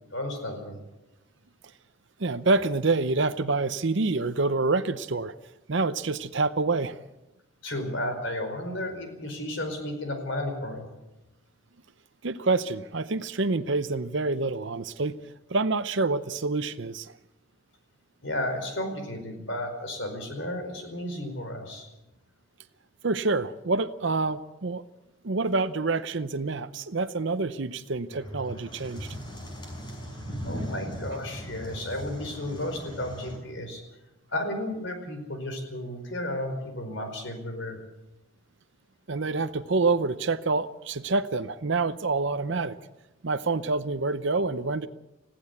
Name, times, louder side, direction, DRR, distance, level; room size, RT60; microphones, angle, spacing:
voice 1, 0.1-0.8 7.6-10.8 18.2-21.9 30.4-33.8 34.3-37.8, left 1 dB, 60° left, 6 dB, 4.8 m, -33 dB
voice 2, 2.2-5.3 5.7-7.0 12.2-15.2 15.5-17.1 23.0-24.8 25.2-29.1 39.1-42.8 43.2-44.9, right 3 dB, 60° right, 10 dB, 0.7 m, -27 dB
sound 1, 28.1-33.4, equal, 20° left, 5.0 m, -38 dB
20.5 x 15.5 x 8.2 m, 0.97 s
head